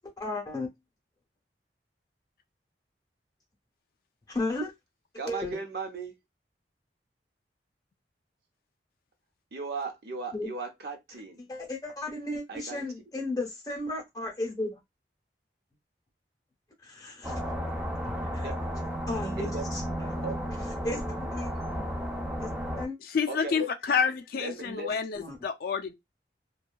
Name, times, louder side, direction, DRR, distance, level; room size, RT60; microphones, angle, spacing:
voice 1, 0.2-0.7 4.3-4.7 5.3-5.6 10.3-10.5 11.5-14.8 16.8-17.4 18.0-18.4 19.1-20.3 20.8-21.9 22.4-23.0 24.6-25.3, left 2 dB, 20° left, 0.8 m, -35 dB
voice 2, 5.2-6.2 9.5-11.5 12.5-12.9 18.4-18.6 19.4-19.7 20.2-20.3 23.3-23.7 24.3-25.0, right 3 dB, 65° right, 0.8 m, -36 dB
sound 1, 17.2-22.9, equal, 10° right, 0.5 m, -33 dB
voice 3, 23.1-25.9, left 6 dB, 55° left, 0.3 m, -29 dB
2.7 x 2.3 x 2.2 m
head